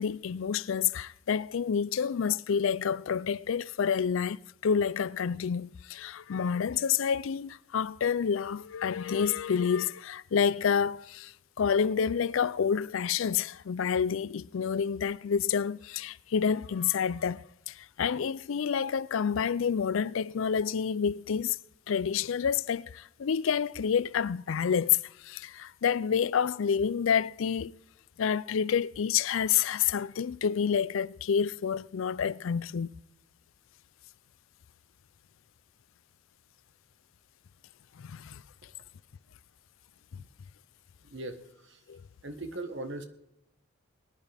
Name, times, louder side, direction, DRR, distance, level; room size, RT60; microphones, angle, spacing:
voice 1, 0.0-21.6 21.9-27.7 28.2-32.9 38.0-38.4 41.9-42.0, left 7 dB, 65° left, 0.4 m, -28 dB
voice 2, 42.2-43.1, right 2 dB, 55° right, 1.3 m, -37 dB
20.0 x 10.5 x 3.4 m
head